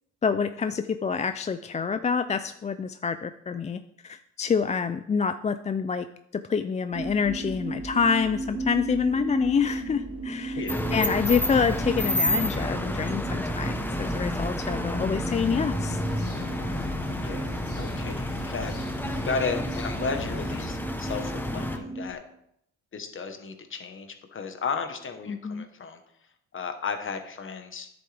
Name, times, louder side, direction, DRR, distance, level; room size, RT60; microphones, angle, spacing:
voice 1, 0.2-6.1 6.3-10.6 10.9-16.0 25.3-25.6, left 6 dB, 25° left, 11 dB, 0.4 m, -27 dB
sound 1, 6.9-22.1, right 2 dB, 50° right, 2.2 m, -36 dB
voice 2, 10.5-10.9 17.2-18.7 19.1-22.2 22.9-26.0 26.5-27.9, left 5 dB, 40° left, 7 dB, 1.2 m, -34 dB
sound 2, 10.7-21.8, left 1 dB, 5° left, 1.0 m, -30 dB
sound 3, 15.2-20.6, left 3 dB, 75° left, 2.8 m, -42 dB
10.0 x 7.9 x 3.4 m, 0.76 s
cardioid pair, 90°, 30 cm